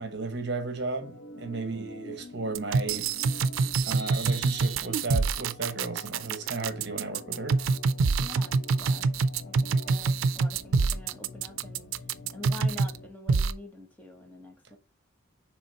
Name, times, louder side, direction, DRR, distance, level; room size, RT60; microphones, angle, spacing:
voice 1, 0.0-3.1 3.8-7.6, right 3 dB, 55° right, 1.1 m, -34 dB
Organ, 1.0-13.1, left 2 dB, 85° left, 0.9 m, -47 dB
voice 2, 1.5-2.0 8.2-9.1 9.4-11.9 12.3-14.8, left 2 dB, 10° left, 1.2 m, -46 dB
sound 1, 2.5-13.0 13.3-13.5, right 4 dB, 85° right, 0.4 m, -25 dB
Vehicle horn car horn honking, 4.0-5.4, right 3 dB, 35° left, 2.4 m, -44 dB
7.0 x 3.4 x 4.0 m
head